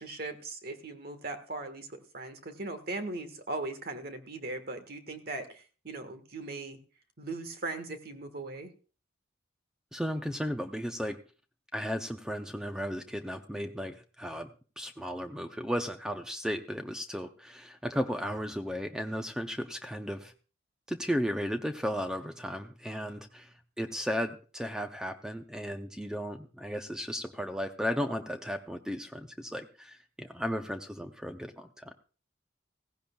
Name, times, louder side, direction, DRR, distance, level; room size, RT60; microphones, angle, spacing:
voice 1, 0.0-6.8 7.2-8.7, right 2 dB, 50° right, 8 dB, 1.5 m, -39 dB
voice 2, 9.9-11.2 11.7-14.5 14.8-20.3 20.9-31.9, equal, 5° right, 6 dB, 0.6 m, -35 dB
16.0 x 15.5 x 2.3 m, 0.36 s
head